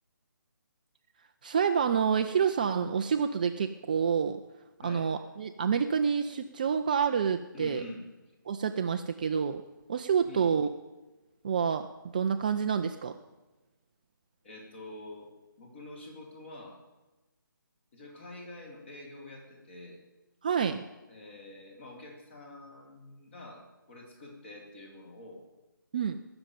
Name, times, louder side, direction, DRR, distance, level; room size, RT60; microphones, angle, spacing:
voice 1, 1.4-4.4 4.8-7.8 8.5-9.6 9.9-10.7 11.4-11.9 12.1-13.1 20.4-20.8 25.9-26.2, right 7 dB, 25° right, 7 dB, 0.4 m, -28 dB
voice 2, 7.5-8.0 10.2-10.5 14.4-15.3 15.6-16.8 17.9-20.0 21.1-25.4, left 2 dB, 30° left, 1 dB, 3.4 m, -46 dB
18.0 x 7.0 x 9.2 m, 1.1 s
figure-of-eight pair, 150°, 11 cm